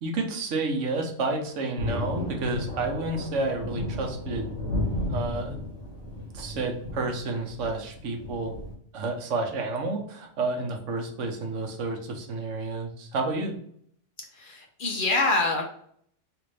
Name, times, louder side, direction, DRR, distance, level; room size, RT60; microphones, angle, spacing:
voice 1, 0.0-4.5 5.1-5.6 6.3-8.6 8.9-13.5, right 3 dB, 80° right, 3 dB, 1.1 m, -30 dB
Thunder, 1.8-8.7, left 1 dB, 80° left, 1.6 m, -33 dB
voice 2, 14.3-15.6, left 3 dB, 55° left, 1 dB, 0.7 m, -25 dB
3.4 x 2.5 x 3.2 m, 0.64 s
omnidirectional pair, 1.3 m